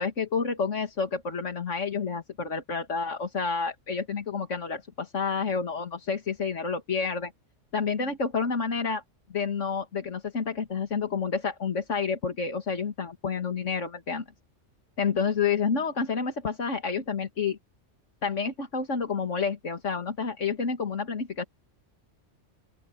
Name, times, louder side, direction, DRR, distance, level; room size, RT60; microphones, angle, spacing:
voice 1, 0.0-7.3 7.7-9.0 9.3-14.2 15.0-17.6 18.2-21.4, left 5 dB, 80° left, 2.4 m, -29 dB
open air
omnidirectional pair, 1.2 m